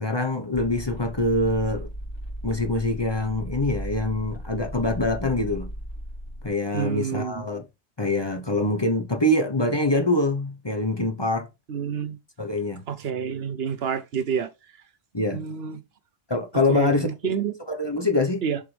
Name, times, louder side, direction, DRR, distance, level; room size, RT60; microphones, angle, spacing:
voice 1, 0.0-1.9 2.4-5.7 6.4-7.6 8.0-11.5 12.4-12.8 15.1-15.4 16.3-17.1 17.7-18.4, left 2 dB, 25° left, 1.0 m, -24 dB
sound 1, 0.5-6.5, right 1 dB, 55° left, 2.9 m, -36 dB
voice 2, 6.7-7.5 11.7-12.2 12.9-14.5 15.3-15.8 16.7-17.5 18.4-18.6, right 7 dB, 65° right, 1.1 m, -28 dB
7.0 x 4.6 x 3.4 m
omnidirectional pair, 1.1 m